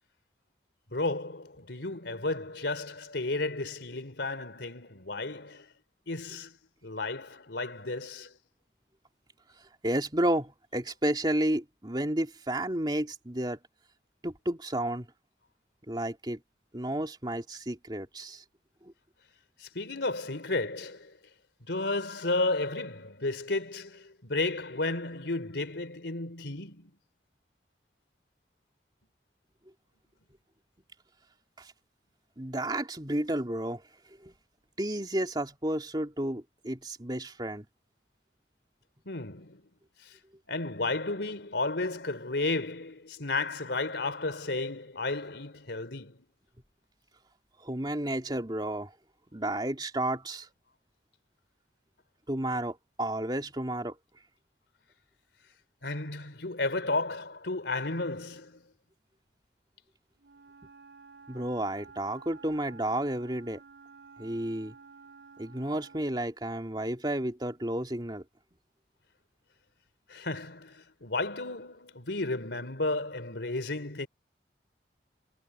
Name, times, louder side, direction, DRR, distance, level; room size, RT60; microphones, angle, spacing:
voice 1, 0.9-5.7 6.1-6.5 6.8-8.3 19.6-21.1 21.6-26.9 39.1-39.6 40.0-40.2 40.5-46.2 55.8-58.6 70.1-74.1, left 2 dB, 85° left, 3.4 m, -33 dB
voice 2, 9.8-13.6 14.2-15.1 15.9-16.4 16.7-18.4 31.6-31.7 32.4-33.8 34.2-34.3 34.8-37.7 47.6-48.9 49.3-50.5 52.3-53.9 61.3-63.6 64.2-64.7 65.4-68.2, right 1 dB, 25° right, 2.7 m, -31 dB
Wind instrument woodwind instrument, 60.2-66.2, right 5 dB, 80° right, 4.4 m, -52 dB
head